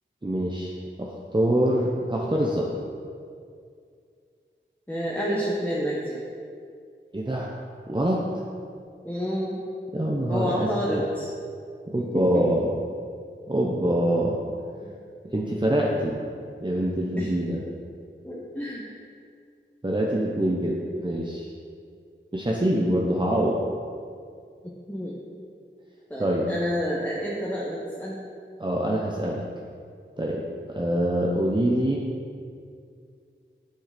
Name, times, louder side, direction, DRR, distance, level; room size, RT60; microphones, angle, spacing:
voice 1, 0.2-2.7 7.1-7.5 7.9-8.3 9.9-11.0 11.9-12.7 13.5-14.4 15.3-16.2 16.6-17.6 19.8-21.5 22.3-23.6 26.2-26.4 28.6-29.4 30.2-30.4 30.7-32.0, right 1 dB, 20° right, -3 dB, 0.9 m, -25 dB
voice 2, 4.9-6.2 9.0-9.6 10.3-11.3 12.0-12.5 14.8-14.9 17.2-17.3 18.2-18.9 24.6-25.2 26.1-28.2, equal, 10° left, -5 dB, 1.2 m, -29 dB
8.5 x 6.3 x 5.2 m, 2.3 s
wide cardioid pair, 55°, 20 cm